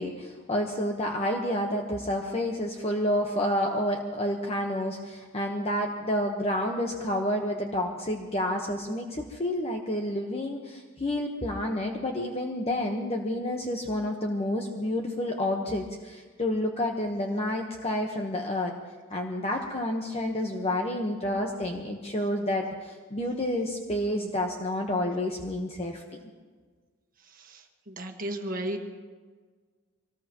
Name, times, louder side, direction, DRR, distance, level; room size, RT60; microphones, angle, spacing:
voice 1, 0.0-18.7 19.1-26.2, left 1 dB, 30° left, 1 dB, 1.2 m, -29 dB
voice 2, 27.4-28.8, right 1 dB, 45° right, 3 dB, 1.5 m, -34 dB
24.5 x 19.5 x 3.0 m, 1.5 s
head